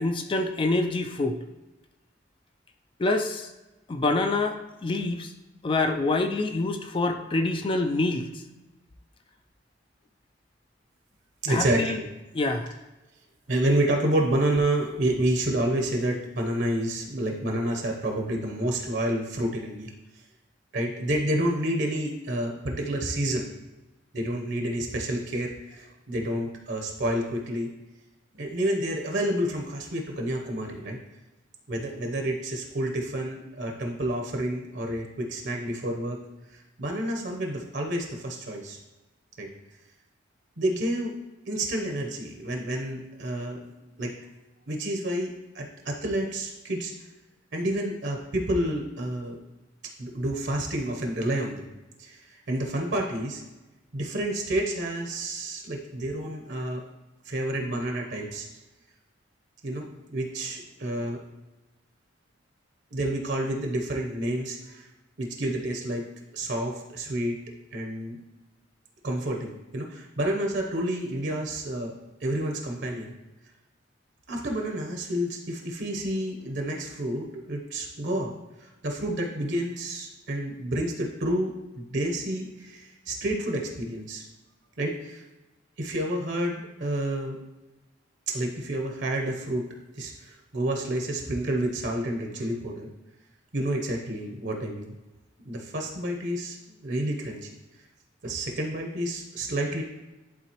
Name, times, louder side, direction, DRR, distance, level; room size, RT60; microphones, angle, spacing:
voice 1, 0.0-1.4 3.0-3.5 3.9-5.3 5.6-8.3 11.5-12.0 12.3-12.7, left 2 dB, 25° left, 6 dB, 0.4 m, -26 dB
voice 2, 11.4-12.1 13.5-19.9 20.7-23.5 24.1-27.7 28.3-31.0 31.7-36.2 36.5-38.8 39.4-39.5 40.6-41.1 41.5-43.7 44.0-44.3 44.7-46.9 47.5-49.4 50.0-51.7 52.0-53.4 53.9-56.8 57.2-58.5 59.6-61.2 62.9-64.9 65.2-66.0 66.3-67.4 67.7-68.2 69.0-71.9 72.2-73.1 74.3-78.3 78.6-84.3 84.8-85.2 85.8-87.4 88.3-89.6 89.9-92.9 93.5-95.0 95.4-97.5 98.2-99.8, right 1 dB, 65° right, 2 dB, 0.9 m, -29 dB
11.0 x 3.8 x 3.0 m, 1.1 s
head